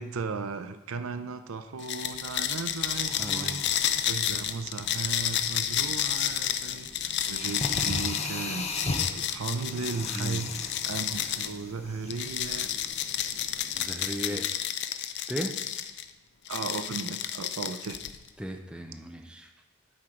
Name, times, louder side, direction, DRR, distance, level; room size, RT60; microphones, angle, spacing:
voice 1, 0.0-3.6 4.0-8.7 9.1-12.7 14.3-14.4 16.5-18.0, right 4 dB, 80° right, 10 dB, 0.6 m, -36 dB
sound 1, 1.8-11.6 12.1-16.0 16.5-18.3, left 10 dB, 55° left, 0.5 m, -31 dB
sound 2, 2.2-7.4, left 2 dB, 80° left, 1.2 m, -55 dB
sound 3, 2.9-13.9, left 2 dB, 30° left, 0.8 m, -39 dB
voice 2, 3.2-3.7 10.1-10.5 13.8-14.5 15.3-15.6 18.4-19.5, equal, 5° right, 5 dB, 0.6 m, -36 dB
11.5 x 4.4 x 5.0 m, 1.1 s
head